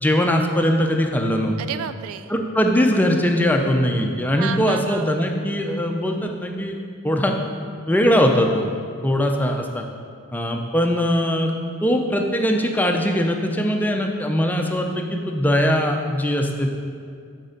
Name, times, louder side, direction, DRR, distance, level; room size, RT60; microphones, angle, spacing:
voice 1, 0.0-1.6 2.3-6.8 7.0-7.4 7.9-8.7 9.0-9.8 10.3-11.5 11.8-16.7, equal, 10° left, 2 dB, 0.4 m, -21 dB
voice 2, 1.6-2.3 4.4-5.1, right 8 dB, 65° right, 12 dB, 0.3 m, -31 dB
6.4 x 4.3 x 5.1 m, 2.2 s
head